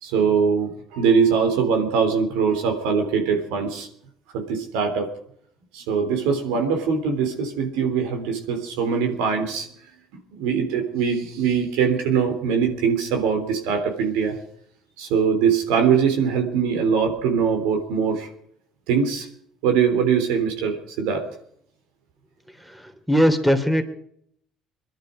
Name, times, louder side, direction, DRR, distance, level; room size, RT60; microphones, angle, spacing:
voice 1, 0.0-3.9 4.3-5.1 5.7-9.7 10.4-14.4 15.0-18.3 18.9-19.3 19.6-21.3, right 6 dB, 80° right, 5 dB, 3.4 m, -22 dB
voice 2, 23.1-23.8, equal, 5° right, 8 dB, 3.2 m, -19 dB
23.0 x 12.0 x 5.1 m, 0.68 s
hypercardioid pair, 65°, 0 cm